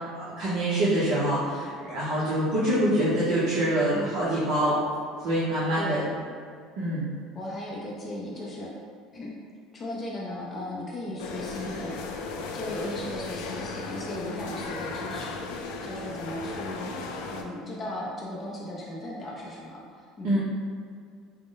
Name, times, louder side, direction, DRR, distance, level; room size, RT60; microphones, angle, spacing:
voice 1, 0.1-4.8 5.2-6.0 6.8-7.1 20.2-20.4, right 1 dB, 60° right, -10 dB, 0.8 m, -25 dB
voice 2, 7.3-8.7 9.1-9.4 9.7-15.4 15.8-16.9 17.3-20.4, left 1 dB, 20° left, -4 dB, 0.5 m, -36 dB
sound 1, 11.2-17.4, left 3 dB, 85° left, 0.4 m, -36 dB
4.9 x 2.1 x 3.7 m, 2.1 s
cardioid pair, 175°, 0 cm